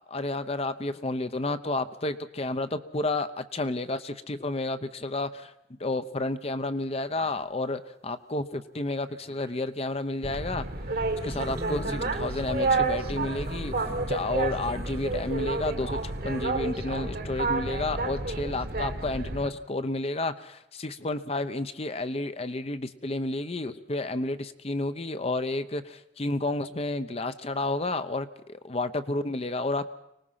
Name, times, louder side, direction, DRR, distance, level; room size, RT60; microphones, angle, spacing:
voice 1, 0.0-5.5 5.8-10.7 11.2-13.8 14.1-29.9, left 2 dB, 35° left, 11 dB, 0.8 m, -31 dB
sound 1, 7.1-7.5 9.0-9.6 11.0-16.4, right 1 dB, 15° right, 0.7 m, -43 dB
Boat Water vehicle, 10.2-19.5, right 3 dB, 55° right, 1.5 m, -30 dB
24.5 x 19.0 x 5.7 m, 0.81 s
head